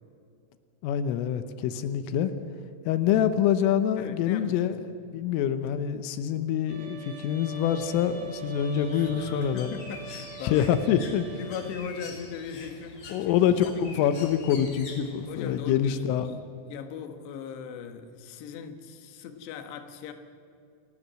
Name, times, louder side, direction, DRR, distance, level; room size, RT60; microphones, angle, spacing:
voice 1, 0.8-2.3 2.9-4.8 5.1-9.7 10.4-11.4 13.1-16.3, left 9 dB, 85° left, 10 dB, 3.5 m, -26 dB
voice 2, 4.0-4.7 8.9-10.9 11.4-13.8 15.3-16.3 16.7-20.1, left 7 dB, 65° left, 6 dB, 3.3 m, -39 dB
Bowed string instrument, 6.7-11.7, right 6 dB, 90° right, 5.1 m, -43 dB
Bird, 7.5-15.6, left 3 dB, 40° left, 3.1 m, -46 dB
28.5 x 16.0 x 7.6 m, 2.5 s
omnidirectional pair, 5.7 m